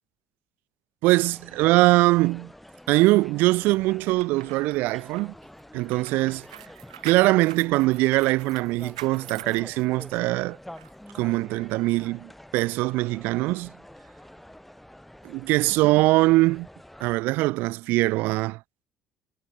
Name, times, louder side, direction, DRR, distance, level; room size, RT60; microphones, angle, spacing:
voice 1, 1.0-2.5 2.9-5.3 5.7-6.4 7.0-10.6 11.1-13.7 15.2-16.7 17.0-18.6, right 20 dB, 70° right, 0.4 m, -22 dB
sound 1, 1.2-17.2, left 1 dB, 5° left, 1.3 m, -47 dB
sound 2, 4.0-10.3 10.8-10.9, right 12 dB, 90° right, 0.9 m, -44 dB
hypercardioid pair, 65°, 3 cm